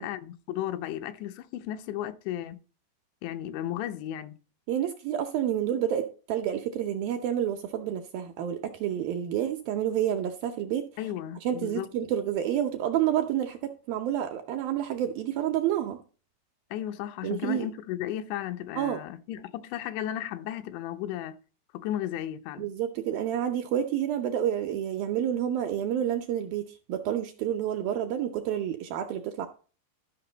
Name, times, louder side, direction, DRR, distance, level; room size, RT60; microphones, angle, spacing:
voice 1, 0.0-2.6 3.2-4.4 11.0-11.9 16.7-21.4 21.7-22.7, left 12 dB, 85° left, 3.0 m, -34 dB
voice 2, 4.7-10.9 11.4-16.0 17.2-17.7 18.8-19.0 22.6-29.5, right 10 dB, 80° right, 2.1 m, -29 dB
12.5 x 6.0 x 3.9 m
omnidirectional pair, 5.0 m